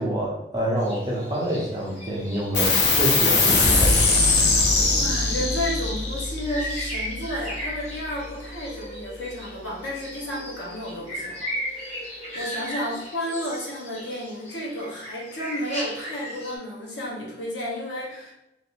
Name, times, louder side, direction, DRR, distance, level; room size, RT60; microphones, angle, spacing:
voice 1, 0.0-4.0, equal, 20° right, -4 dB, 0.6 m, -27 dB
sound 1, 0.8-16.6, equal, 40° left, 0.9 m, -37 dB
sound 2, 2.5-9.4, left 3 dB, 70° left, 0.6 m, -23 dB
voice 2, 5.0-18.3, left 1 dB, 85° left, -4 dB, 0.9 m, -32 dB
2.6 x 2.5 x 2.8 m, 0.88 s
head